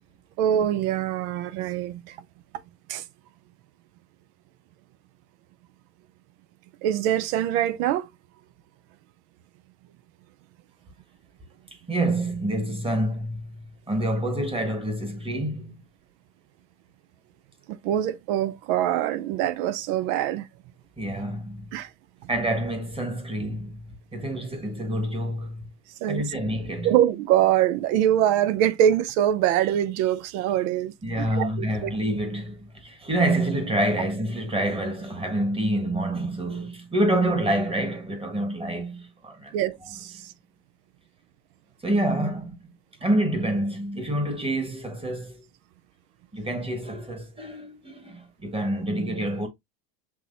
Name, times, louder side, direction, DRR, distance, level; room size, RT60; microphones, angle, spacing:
voice 1, 0.4-2.1 2.9-3.0 6.8-8.1 17.7-20.5 21.7-21.9 26.0-26.3 26.8-31.9 39.5-40.3, right 11 dB, 60° right, 0.7 m, -24 dB
voice 2, 11.9-15.7 21.0-21.7 22.3-25.7 26.1-26.9 31.0-39.5 41.8-42.7 43.0-45.4 46.3-49.5, right 1 dB, 10° right, 1.3 m, -27 dB
5.9 x 3.0 x 2.5 m
supercardioid pair, 115°, 48 cm